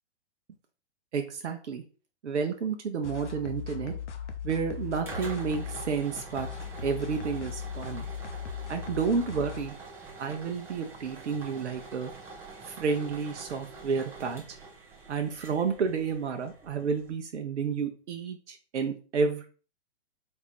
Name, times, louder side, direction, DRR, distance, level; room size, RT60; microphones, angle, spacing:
voice 1, 1.1-1.8 2.2-3.9 4.4-6.5 6.8-8.1 8.7-9.8 10.2-12.1 12.6-14.4 15.1-19.5, right 5 dB, 75° right, 5 dB, 0.6 m, -30 dB
sound 1, 3.0-9.7, left 7 dB, 80° left, 0.7 m, -38 dB
sound 2, 4.6-17.1, right 3 dB, 5° right, 0.4 m, -46 dB
4.3 x 2.5 x 3.4 m, 0.38 s
figure-of-eight pair, 115°, 35 cm